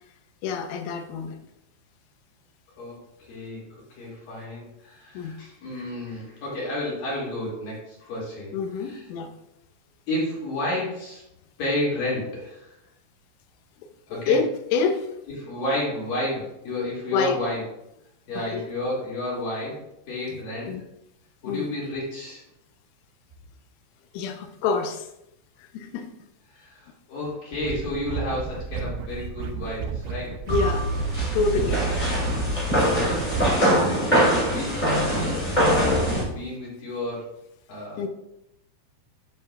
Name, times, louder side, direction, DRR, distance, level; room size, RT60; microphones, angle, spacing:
voice 1, 0.4-1.4 5.1-5.3 8.5-9.3 14.1-15.1 17.1-17.4 18.3-18.7 20.3-20.4 20.7-20.8 21.5-21.7 24.1-25.1 25.6-26.1 30.5-30.9 31.3-31.9 38.0-38.1, left 5 dB, 85° left, 6 dB, 3.3 m, -27 dB
voice 2, 3.3-3.7 4.0-8.5 8.8-9.0 10.1-11.2 11.6-12.8 14.1-14.4 15.4-17.6 18.3-20.7 21.4-22.4 26.5-30.4 32.9-37.3 37.7-38.0, left 1 dB, 50° left, -6 dB, 3.5 m, -31 dB
sound 1, 27.5-33.6, right 5 dB, 80° right, 2.6 m, -32 dB
sound 2, 30.5-36.2, equal, 30° left, 0.8 m, -23 dB
10.0 x 7.5 x 2.4 m, 0.83 s
omnidirectional pair, 5.8 m